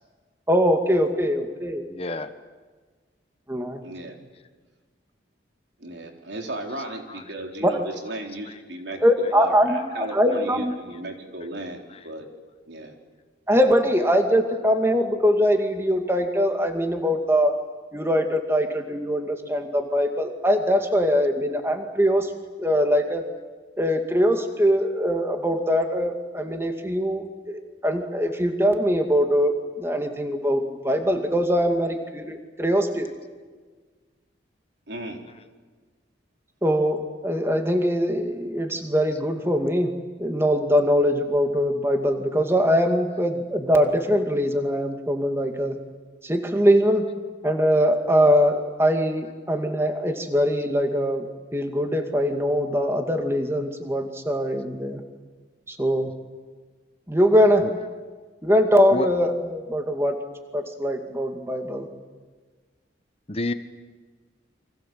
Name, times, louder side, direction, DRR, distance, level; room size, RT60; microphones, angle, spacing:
voice 1, 0.5-1.8 3.5-3.8 7.6-7.7 9.0-10.7 13.5-17.5 17.9-22.3 22.6-23.2 23.8-33.1 36.6-39.9 40.2-45.8 46.2-47.1 47.4-51.3 51.5-55.0 55.7-56.1 57.1-57.6 58.4-60.2 60.5-61.9, equal, 15° right, 5 dB, 2.3 m, -22 dB
voice 2, 1.9-2.3 6.7-7.2 8.4-8.6 9.2-9.3 9.8-10.4 10.9-11.0 11.9-12.0 39.1-39.2 57.6-57.7 58.9-59.1 63.3-63.5, left 2 dB, 30° left, 10 dB, 1.2 m, -32 dB
voice 3, 3.8-4.2 5.8-12.3 12.7-12.9 34.9-35.2, right 1 dB, 75° right, 3 dB, 3.8 m, -35 dB
29.5 x 24.5 x 7.7 m, 1.4 s
head